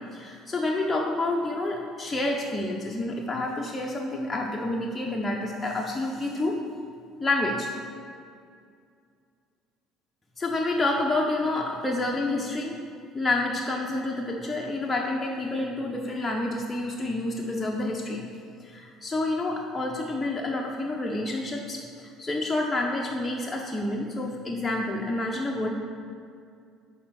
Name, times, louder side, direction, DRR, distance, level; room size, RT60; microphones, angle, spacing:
voice 1, 0.0-6.6 7.2-7.7 10.4-12.8 13.1-18.2 18.6-25.7, left 2 dB, 20° left, -1 dB, 0.8 m, -28 dB
6.0 x 4.1 x 6.1 m, 2.3 s
hypercardioid pair, 70°, 0 cm